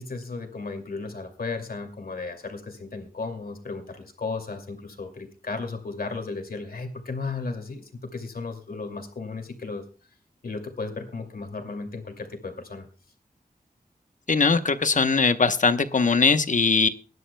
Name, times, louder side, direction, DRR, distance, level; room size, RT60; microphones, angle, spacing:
voice 1, 0.0-9.8 10.4-12.9, left 3 dB, 70° left, 5 dB, 2.4 m, -35 dB
voice 2, 14.3-16.9, left 4 dB, 55° left, 11 dB, 0.9 m, -20 dB
23.0 x 11.0 x 2.2 m, 0.37 s
wide cardioid pair, 100°, 16 cm